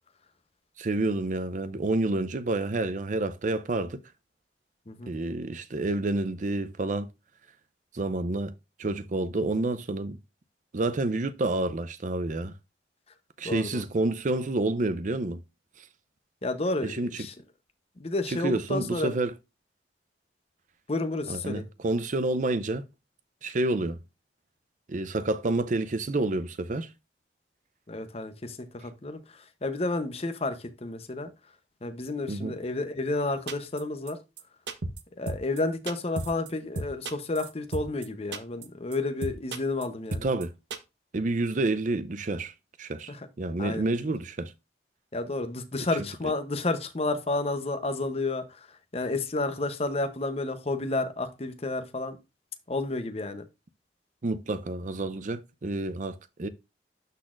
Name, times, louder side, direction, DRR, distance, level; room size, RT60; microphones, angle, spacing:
voice 1, 0.8-4.0 5.1-7.1 7.9-8.5 8.8-10.2 10.7-12.5 13.4-15.4 16.8-17.3 18.3-19.3 21.3-22.8 23.4-24.0 24.9-26.9 32.3-32.6 40.2-40.5 41.1-42.5 42.8-44.5 45.9-46.1 54.2-56.5, right 2 dB, 45° right, 0.5 m, -29 dB
voice 2, 13.4-13.8 16.4-17.3 18.0-19.1 20.9-21.6 27.9-29.2 29.6-31.3 31.8-34.2 35.2-40.3 43.1-43.2 43.6-43.8 45.1-48.4 48.9-52.2 52.7-53.4, left 2 dB, 35° left, 0.8 m, -31 dB
sound 1, 33.5-33.8 34.1-34.2 34.4-34.5 34.7-35.0 35.3-35.6 35.9-36.5 36.8-38.1 38.3-38.7 38.9-39.0 39.2-39.8 40.1-40.4 40.7-40.8, right 2 dB, 85° right, 0.9 m, -33 dB
12.0 x 4.1 x 2.5 m
head